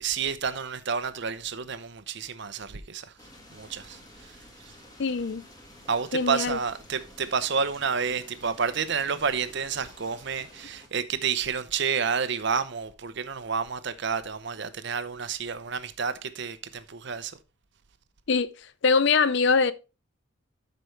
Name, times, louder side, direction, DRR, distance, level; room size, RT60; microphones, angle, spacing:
voice 1, 0.0-3.1 3.5-4.7 5.9-17.4, right 6 dB, 55° right, 0.7 m, -30 dB
sound 1, 3.2-10.9, left 1 dB, 20° left, 1.7 m, -51 dB
voice 2, 5.0-5.4 6.1-6.6 18.3-18.5 18.8-19.7, left 5 dB, 55° left, 0.5 m, -22 dB
12.5 x 5.2 x 3.2 m
head